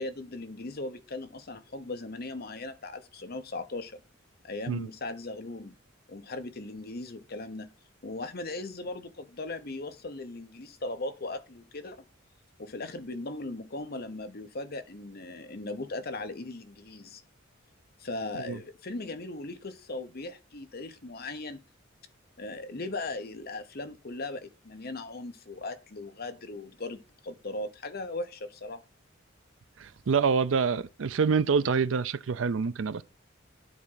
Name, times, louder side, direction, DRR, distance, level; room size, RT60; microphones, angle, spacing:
voice 1, 0.0-4.0 4.4-5.7 6.1-7.7 8.0-12.0 12.6-17.2 18.0-21.6 22.4-28.8, left 2 dB, 50° left, 1.0 m, -38 dB
voice 2, 29.8-33.0, right 5 dB, 75° right, 0.5 m, -26 dB
9.3 x 3.6 x 5.6 m
head